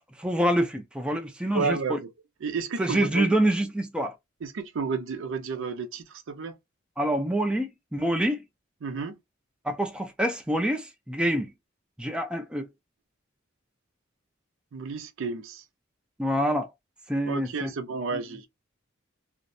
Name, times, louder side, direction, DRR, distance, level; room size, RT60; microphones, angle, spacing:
voice 1, 0.0-2.0 2.8-4.1 7.0-8.4 9.6-11.5 12.0-12.7 16.2-16.7 17.1-17.7 18.1-18.2, right 1 dB, 5° right, 0.4 m, -26 dB
voice 2, 1.5-2.1 2.4-3.3 4.4-6.5 8.8-9.2 14.7-15.6 17.2-18.5, right 4 dB, 70° right, 0.5 m, -31 dB
2.5 x 2.0 x 2.5 m
head